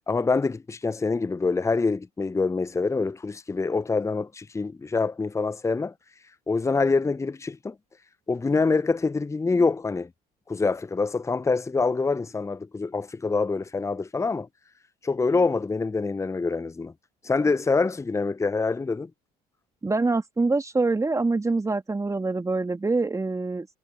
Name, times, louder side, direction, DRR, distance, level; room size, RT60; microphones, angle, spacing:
voice 1, 0.1-5.9 6.5-7.7 8.3-10.1 10.5-14.5 15.0-16.9 17.2-19.1, left 4 dB, 15° left, 1.0 m, -25 dB
voice 2, 19.8-23.7, right 3 dB, 15° right, 3.0 m, -25 dB
figure-of-eight pair, 55°, 20 cm